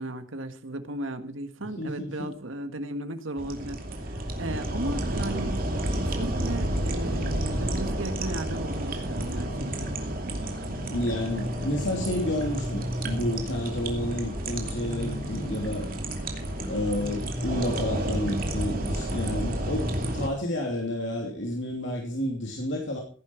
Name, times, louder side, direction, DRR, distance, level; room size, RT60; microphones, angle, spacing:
voice 1, 0.0-5.5 5.9-10.0, right 1 dB, 85° right, 9 dB, 1.6 m, -35 dB
voice 2, 1.8-2.3 10.9-15.9 16.7-23.0, left 1 dB, 65° left, 0 dB, 2.9 m, -30 dB
sound 1, 3.4-20.3, right 1 dB, 45° right, 2.6 m, -31 dB
sound 2, 6.3-20.1, left 1 dB, 20° left, 2.0 m, -39 dB
17.0 x 10.0 x 4.5 m, 0.42 s
head